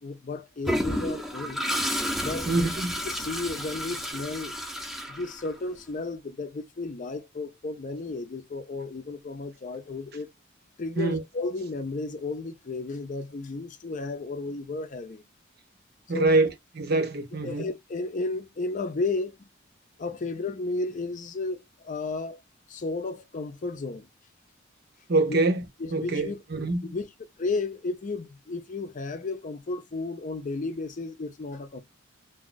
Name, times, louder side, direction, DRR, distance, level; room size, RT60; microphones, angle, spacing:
voice 1, 0.0-1.9 2.2-2.5 3.0-4.5 5.1-10.3 10.8-15.2 16.1-16.4 17.4-19.5 20.0-22.4 22.7-24.1 25.2-25.4 25.8-26.4 26.8-27.1 27.4-31.8, left 3 dB, 40° left, 0.5 m, -33 dB
Toilet flush, 0.6-5.7, equal, ahead, 0.7 m, -31 dB
voice 2, 2.5-2.9 11.0-11.2 16.1-17.7 25.1-25.6 25.9-26.9, right 2 dB, 50° right, 0.9 m, -25 dB
2.6 x 2.3 x 3.8 m
head